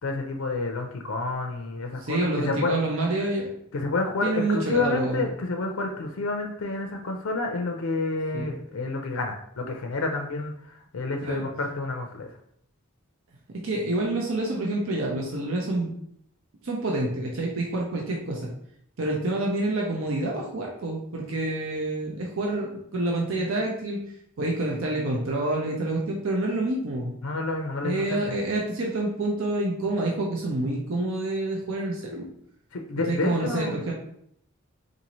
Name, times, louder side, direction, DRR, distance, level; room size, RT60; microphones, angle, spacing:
voice 1, 0.0-2.8 3.7-12.3 27.2-28.4 32.7-33.8, left 3 dB, 80° left, 3 dB, 0.5 m, -29 dB
voice 2, 2.0-3.5 4.2-5.2 8.3-8.5 11.2-11.5 13.5-15.9 16.6-18.5 19.0-24.0 24.4-27.2 27.8-32.3 33.1-33.9, right 2 dB, 70° right, -1 dB, 0.6 m, -27 dB
3.9 x 2.6 x 3.0 m, 0.71 s
head